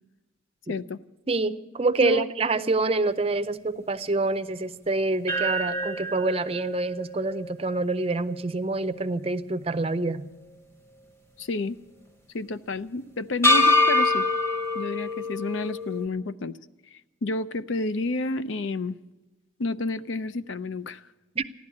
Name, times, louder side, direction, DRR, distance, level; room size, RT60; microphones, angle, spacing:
voice 1, 0.7-1.0 2.0-2.2 11.4-11.8 12.3-14.3 14.7-16.5 16.9-19.0 19.6-21.0, left 2 dB, 70° left, 14 dB, 0.6 m, -30 dB
voice 2, 1.3-10.2 21.4-21.5, right 3 dB, 30° right, 11 dB, 0.5 m, -26 dB
sound 1, 5.3-9.5 9.9-10.0 13.4-16.1, left 2 dB, 15° left, 1.1 m, -26 dB
15.0 x 11.5 x 8.4 m, 1.1 s
head